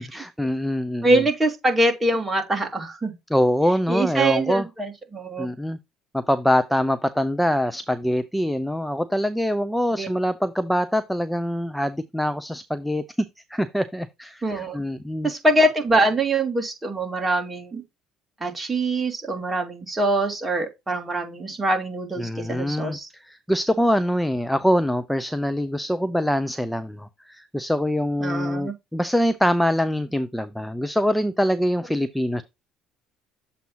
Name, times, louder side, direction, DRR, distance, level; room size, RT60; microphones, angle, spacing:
voice 1, 0.0-1.2 3.3-4.7 5.4-5.8 6.1-13.0 13.5-15.3 22.2-32.4, equal, ahead, 0.5 m, -24 dB
voice 2, 1.0-3.1 3.9-5.5 10.0-10.1 14.4-14.8 15.2-17.8 18.4-23.1 28.2-28.7, right 1 dB, 15° right, 2.6 m, -23 dB
7.5 x 2.8 x 5.5 m
supercardioid pair, 90°, 0 cm